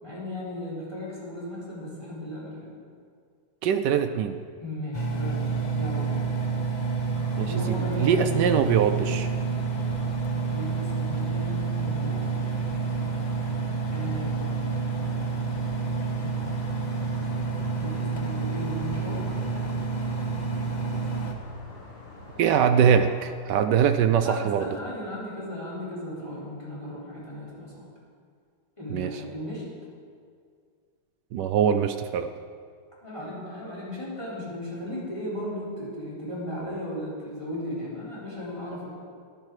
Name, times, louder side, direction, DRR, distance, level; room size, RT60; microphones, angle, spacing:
voice 1, 0.0-2.7 4.6-6.2 7.5-8.2 10.5-12.7 13.9-14.7 17.7-19.3 24.2-27.8 28.8-29.6 33.0-38.9, left 1 dB, 15° left, -8 dB, 3.9 m, -36 dB
voice 2, 3.6-4.4 7.4-7.5 8.0-9.3 20.9-21.0 22.4-24.7 28.9-29.2 31.3-32.3, right 8 dB, 85° right, 8 dB, 0.9 m, -22 dB
Engine, 4.9-21.3, right 5 dB, 50° left, 0.5 m, -29 dB
sound 1, 7.1-23.4, left 1 dB, 80° left, 2.8 m, -44 dB
13.5 x 10.5 x 4.8 m, 2.1 s
omnidirectional pair, 2.4 m